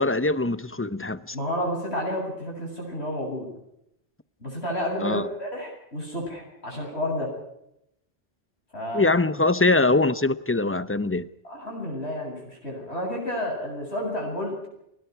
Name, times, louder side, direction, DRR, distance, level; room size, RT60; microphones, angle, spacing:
voice 1, 0.0-1.4 5.0-5.3 8.9-11.3, left 2 dB, 15° left, 0.7 m, -23 dB
voice 2, 1.3-3.5 4.4-7.3 8.7-9.1 11.4-14.6, left 1 dB, 80° left, 8.3 m, -31 dB
29.0 x 21.0 x 4.7 m
omnidirectional pair, 1.1 m